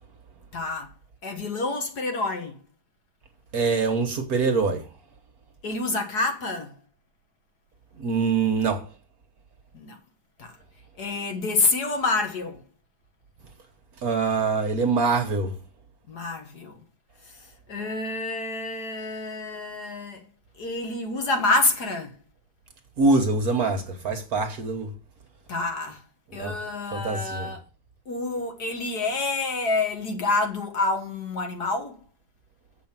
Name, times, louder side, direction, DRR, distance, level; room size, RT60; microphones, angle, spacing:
voice 1, 0.5-0.9 1.2-2.6 5.6-6.7 9.7-10.0 10.4-10.5 11.0-12.6 16.1-16.8 17.7-20.2 20.6-22.1 25.5-26.0 26.3-27.6 28.1-32.0, left 3 dB, 55° left, 1.9 m, -27 dB
voice 2, 3.5-4.8 8.0-8.8 14.0-15.5 23.0-24.9 26.4-26.5 26.9-27.5, right 4 dB, 50° right, 1.5 m, -24 dB
7.8 x 5.3 x 7.3 m
omnidirectional pair, 2.2 m